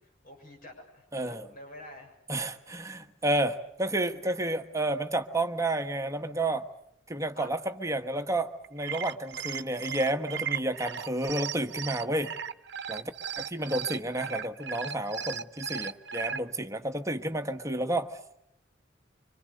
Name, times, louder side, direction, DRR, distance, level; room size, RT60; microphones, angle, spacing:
voice 1, 0.0-2.1 7.3-7.5, left 1 dB, 50° left, 2 dB, 7.0 m, -48 dB
voice 2, 1.1-1.5 2.3-6.6 7.1-12.3 12.9-13.1 13.4-18.2, right 1 dB, 15° right, 6 dB, 1.3 m, -31 dB
sound 1, 8.6-16.4, right 8 dB, 65° right, 0.9 m, -36 dB
26.5 x 25.5 x 6.6 m, 0.75 s
head